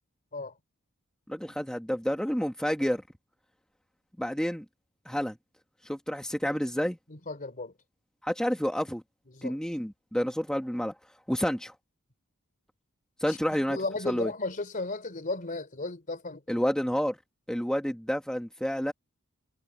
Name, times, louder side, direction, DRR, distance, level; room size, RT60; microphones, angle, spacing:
voice 1, 1.3-3.0 4.2-4.6 5.0-5.3 5.8-7.0 8.2-9.0 9.4-10.9 11.3-11.7 13.2-13.8 14.1-14.3 16.5-17.2 17.5-18.9, equal, 5° left, 1.2 m, -29 dB
voice 2, 7.1-7.7 9.3-9.6 13.3-13.4 13.7-16.6, left 3 dB, 40° left, 3.4 m, -35 dB
head